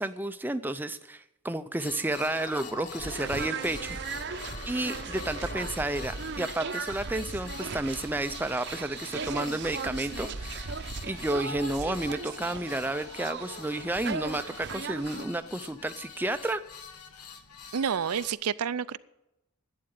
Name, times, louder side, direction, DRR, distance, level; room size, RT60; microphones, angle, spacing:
voice 1, 0.0-4.0 4.7-10.7 11.0-16.6, right 1 dB, 10° right, 10 dB, 0.4 m, -31 dB
sound 1, 1.7-6.8 8.9-16.0, left 3 dB, 30° left, 0.8 m, -48 dB
sound 2, 1.8-18.3, left 7 dB, 85° left, 1.2 m, -46 dB
sound 3, 3.0-15.2, right 5 dB, 50° right, 0.7 m, -37 dB
voice 2, 17.7-19.0, right 7 dB, 90° right, 15 dB, 0.5 m, -29 dB
11.5 x 8.7 x 9.3 m, 0.91 s
head